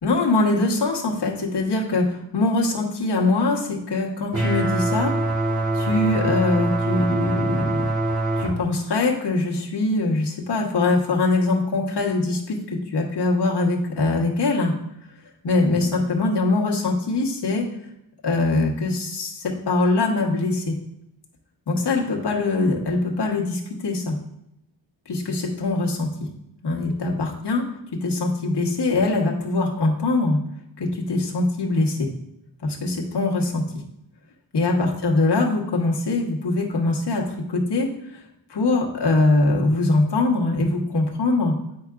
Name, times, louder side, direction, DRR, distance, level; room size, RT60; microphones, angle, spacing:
voice 1, 0.0-5.1 5.7-7.9 8.4-14.7 15.4-17.6 18.2-20.8 21.7-24.2 25.1-26.3 26.6-27.6 28.0-30.4 30.8-32.1 32.6-33.7 34.5-38.2 38.5-41.5, left 2 dB, 60° left, -1 dB, 1.3 m, -22 dB
sound 1, 4.3-8.5, right 2 dB, 45° right, 2.5 m, -23 dB
8.7 x 4.7 x 2.4 m, 0.81 s
wide cardioid pair, 80°, 46 cm